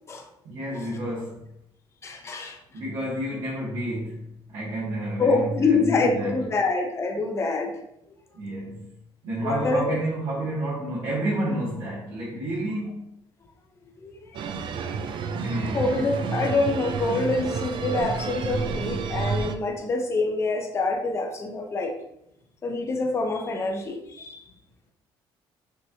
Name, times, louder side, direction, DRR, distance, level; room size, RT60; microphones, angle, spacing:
voice 1, 0.4-1.5 2.7-6.5 8.3-8.9 9.2-13.1 15.4-15.9, right 1 dB, 70° right, -9 dB, 1.7 m, -30 dB
voice 2, 2.0-2.6 5.2-7.7 8.5-8.6 9.4-10.0 14.0-14.4 15.7-21.9 22.6-24.4, left 3 dB, 25° left, 2 dB, 0.7 m, -26 dB
sound 1, 14.3-19.5, right 5 dB, 55° right, 0.4 m, -30 dB
6.1 x 3.0 x 2.8 m, 0.77 s
cardioid pair, 130°, 10 cm